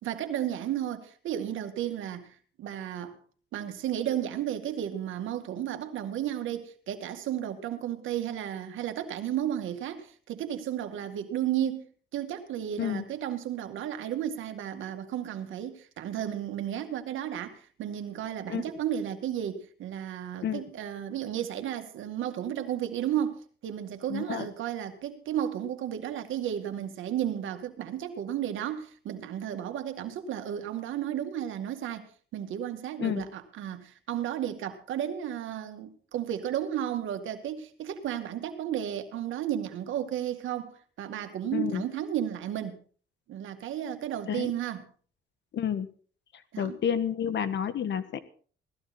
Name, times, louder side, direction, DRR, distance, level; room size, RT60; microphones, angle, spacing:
voice 1, 0.0-3.2 3.5-11.9 12.1-42.8 43.3-44.9 46.5-46.8, right 10 dB, 80° right, 2.2 m, -33 dB
voice 2, 24.1-24.5 33.0-33.3 41.5-41.8 44.3-44.5 45.5-45.9 46.6-48.2, left 8 dB, 65° left, 1.6 m, -30 dB
18.0 x 14.0 x 4.3 m
cardioid pair, 90°, 20 cm